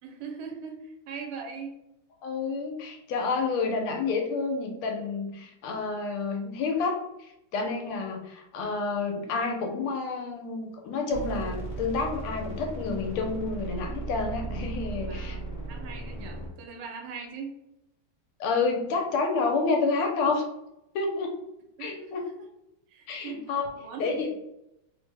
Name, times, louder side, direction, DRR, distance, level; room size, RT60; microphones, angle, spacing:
voice 1, 0.0-1.8 15.1-17.5 21.8-22.3 22.9-24.3, right 5 dB, 80° right, 2 dB, 1.5 m, -40 dB
voice 2, 2.2-15.4 18.4-20.4 20.9-21.3 21.8-22.2 23.1-23.7 24.0-24.3, left 4 dB, 85° left, 3 dB, 1.6 m, -29 dB
sound 1, 11.1-16.5, right 3 dB, 25° left, 0.9 m, -36 dB
3.6 x 2.1 x 3.2 m, 0.84 s
omnidirectional pair, 2.3 m